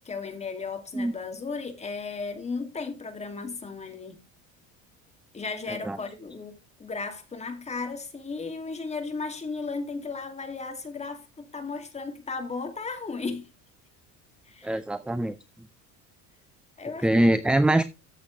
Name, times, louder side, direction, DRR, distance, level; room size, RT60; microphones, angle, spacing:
voice 1, 0.0-4.2 5.3-13.5 14.4-14.8 16.8-17.3, left 4 dB, 20° left, 2.6 m, -35 dB
voice 2, 14.6-15.4 17.0-17.8, right 1 dB, 5° right, 0.5 m, -22 dB
13.5 x 7.9 x 3.3 m
cardioid pair, 130°, 36 cm